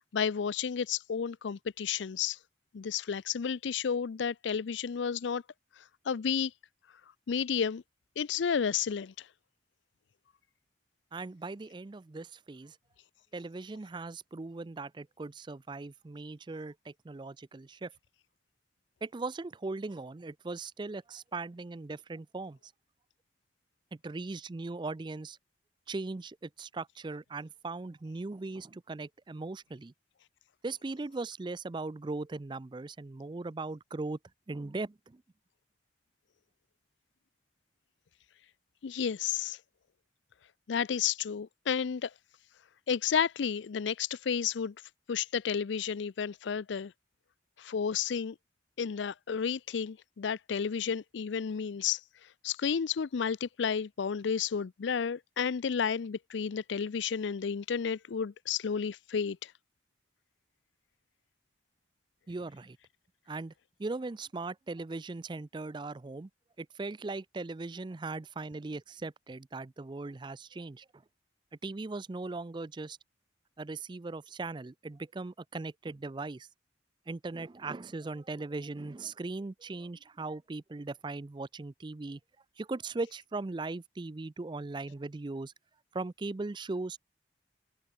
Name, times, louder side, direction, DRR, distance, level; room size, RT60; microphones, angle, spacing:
voice 1, 0.1-2.4 2.7-5.4 6.1-6.5 7.3-7.8 8.2-9.3 38.8-39.6 40.7-42.1 42.9-44.7 45.1-46.9 47.6-48.4 48.8-52.0 52.4-59.5, left 7 dB, 75° left, 0.4 m, -31 dB
voice 2, 11.1-12.8 13.3-17.9 19.0-22.7 23.9-25.4 25.9-29.9 30.6-34.2 34.5-35.2 62.3-62.8 63.3-63.5 63.8-66.3 66.6-70.9 71.6-73.0 73.6-76.5 77.1-82.2 82.6-85.5 85.9-87.0, right 3 dB, 25° right, 0.4 m, -39 dB
open air
head